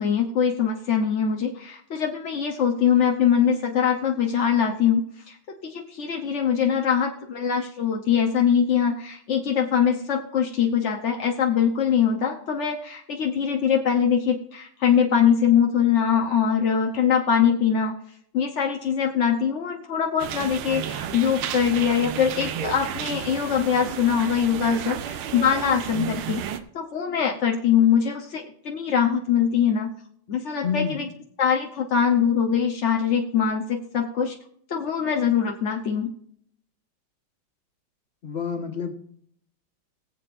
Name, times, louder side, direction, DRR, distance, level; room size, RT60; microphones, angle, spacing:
voice 1, 0.0-5.4 5.6-17.9 18.3-29.9 30.3-31.1 31.4-34.4 34.7-36.1, left 7 dB, 50° left, 1 dB, 0.8 m, -23 dB
sound 1, 20.2-26.6, right 9 dB, 85° right, 1.7 m, -32 dB
voice 2, 30.6-31.1 38.2-38.9, left 6 dB, 35° left, 3 dB, 1.6 m, -28 dB
21.5 x 7.8 x 2.6 m, 0.65 s
omnidirectional pair, 2.3 m